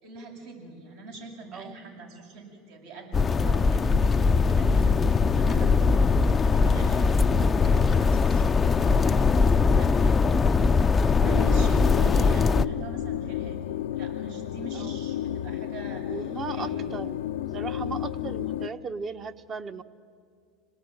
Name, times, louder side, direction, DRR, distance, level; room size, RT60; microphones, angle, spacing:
voice 1, 0.0-9.3 9.6-13.7 13.9-17.0, right 3 dB, 75° right, 0 dB, 7.5 m, -43 dB
sound 1, 3.1-12.7, left 4 dB, 20° left, 0.5 m, -21 dB
sound 2, 11.2-18.7, left 12 dB, 85° left, 0.6 m, -32 dB
voice 2, 14.7-15.1 16.1-17.2 17.5-19.8, right 5 dB, 30° right, 10 dB, 1.2 m, -37 dB
26.5 x 19.5 x 9.1 m, 2.2 s
supercardioid pair, 110°, 0 cm